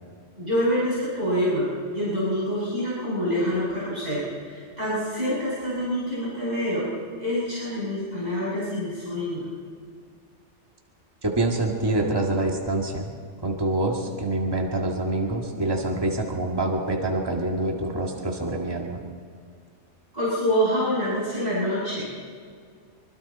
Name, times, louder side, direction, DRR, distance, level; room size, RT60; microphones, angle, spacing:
voice 1, 0.4-6.9 7.2-9.5 20.1-22.1, equal, 35° right, -10 dB, 7.1 m, -26 dB
voice 2, 11.2-13.1 13.4-19.0, right 2 dB, 20° right, 0 dB, 2.0 m, -26 dB
25.0 x 24.5 x 4.2 m, 2.1 s
omnidirectional pair, 1.2 m